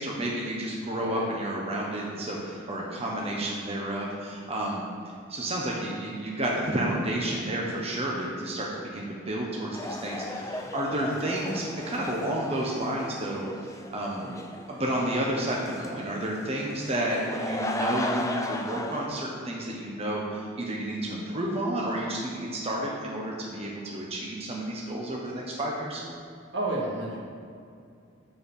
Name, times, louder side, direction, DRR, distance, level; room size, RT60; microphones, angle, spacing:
voice 1, 0.0-4.8 5.3-13.4 13.9-14.2 14.7-26.0, right 1 dB, 30° right, -3 dB, 1.2 m, -31 dB
voice 2, 0.9-1.3 3.1-3.4 10.9-11.2 14.2-14.4 26.5-27.2, right 2 dB, 65° right, -3 dB, 1.9 m, -33 dB
sound 1, 9.7-19.1, left 2 dB, 15° left, 0.6 m, -35 dB
14.0 x 4.7 x 5.5 m, 2.4 s
head